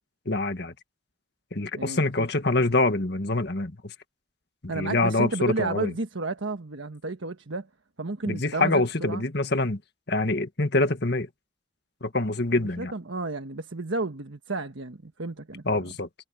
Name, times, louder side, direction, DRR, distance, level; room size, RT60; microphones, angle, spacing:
voice 1, 0.2-0.7 1.5-3.9 4.6-5.9 8.2-9.8 10.1-11.3 12.0-12.9 15.6-16.1, left 2 dB, 55° left, 1.8 m, -25 dB
voice 2, 1.7-2.3 4.7-7.7 8.0-9.2 12.6-15.8, right 3 dB, 80° right, 1.4 m, -32 dB
head